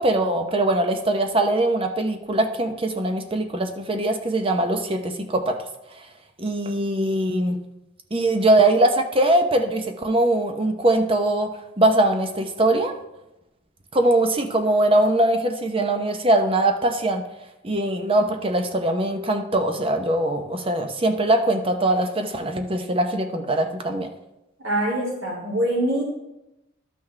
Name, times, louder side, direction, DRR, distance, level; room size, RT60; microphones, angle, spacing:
voice 1, 0.0-5.6 6.4-7.6 8.1-11.5 11.8-12.9 13.9-17.2 17.6-24.1, right 1 dB, 25° right, 5 dB, 0.8 m, -21 dB
voice 2, 24.6-26.0, right 1 dB, 80° right, -4 dB, 2.9 m, -24 dB
12.0 x 5.9 x 3.3 m, 0.91 s
head